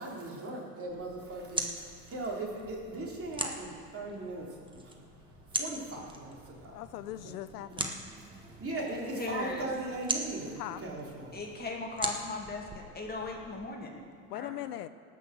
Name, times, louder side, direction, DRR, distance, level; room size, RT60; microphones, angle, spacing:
voice 1, 0.0-5.0 5.5-6.8 7.1-7.4 7.7-7.8 8.3-11.4, right 2 dB, 30° right, -2 dB, 3.6 m, -39 dB
sound 1, 0.9-13.7, right 2 dB, 10° right, 1.2 m, -41 dB
voice 2, 6.7-7.9 10.6-10.8 14.3-14.9, left 13 dB, 80° left, 13 dB, 0.7 m, -40 dB
voice 3, 9.1-9.7 11.3-14.0 14.3-14.6, left 3 dB, 20° left, 0 dB, 2.2 m, -38 dB
18.0 x 6.3 x 6.7 m, 2.1 s
supercardioid pair, 105°, 47 cm